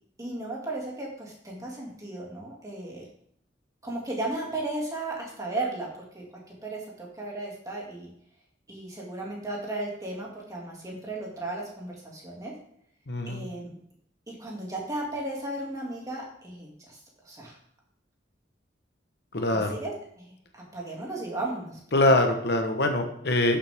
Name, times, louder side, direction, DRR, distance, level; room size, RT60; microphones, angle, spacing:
voice 1, 0.2-3.1 3.8-5.9 6.1-6.2 6.6-8.1 8.7-12.5 13.3-13.8 14.3-17.0 17.2-17.6 19.5-21.8, right 2 dB, 20° right, -2 dB, 2.3 m, -35 dB
voice 2, 13.1-13.5 19.3-19.8 21.9-23.6, left 2 dB, 60° left, 5 dB, 1.1 m, -23 dB
11.5 x 7.4 x 3.5 m, 0.67 s
head